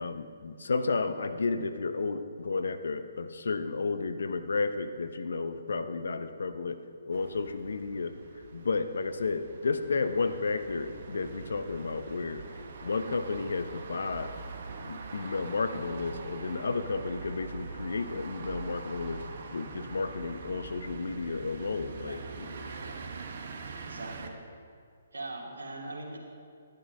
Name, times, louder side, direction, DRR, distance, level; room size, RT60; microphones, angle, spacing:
voice 1, 0.0-6.8 7.1-8.1 8.5-12.4 12.8-14.3 14.8-19.2 19.5-22.5, left 4 dB, 65° left, 10 dB, 0.8 m, -32 dB
sound 1, 7.1-24.3, right 4 dB, 50° right, 1.3 m, -43 dB
voice 2, 23.8-24.4 25.1-26.2, right 2 dB, 70° right, -1 dB, 2.5 m, -41 dB
11.5 x 10.5 x 5.4 m, 2.3 s
figure-of-eight pair, 135°, 0 cm